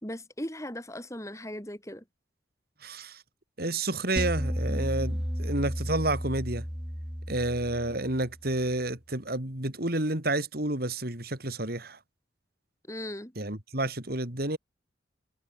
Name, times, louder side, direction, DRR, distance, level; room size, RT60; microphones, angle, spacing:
voice 1, 0.0-2.0 12.9-13.3, left 1 dB, 15° left, 5.0 m, -38 dB
voice 2, 2.8-3.2 3.6-6.6 7.3-12.0 13.4-14.6, right 2 dB, 55° right, 3.7 m, -30 dB
sound 1, 4.2-8.5, equal, 5° right, 4.0 m, -33 dB
head